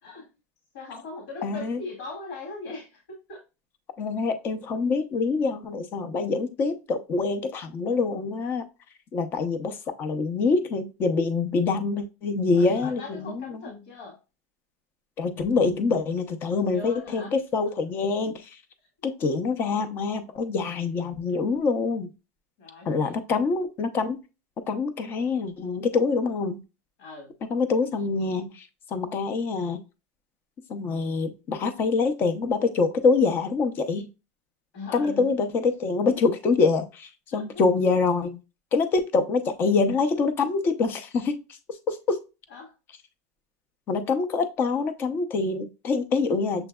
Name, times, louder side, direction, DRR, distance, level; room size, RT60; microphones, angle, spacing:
voice 1, 0.7-3.4 12.5-14.2 16.7-17.4 22.6-23.2 27.0-27.3 34.7-35.3 37.3-37.6 42.5-42.7, left 3 dB, 70° left, 1 dB, 2.0 m, -40 dB
voice 2, 1.4-1.8 4.0-8.7 9.1-13.4 15.2-18.6 19.0-22.1 22.8-24.2 24.7-26.6 27.5-29.8 30.7-34.1 34.9-38.4 38.7-41.6 41.9-42.2 43.9-46.7, left 4 dB, 25° left, 9 dB, 0.6 m, -25 dB
6.9 x 3.2 x 2.3 m, 0.29 s
supercardioid pair, 165°, 8 cm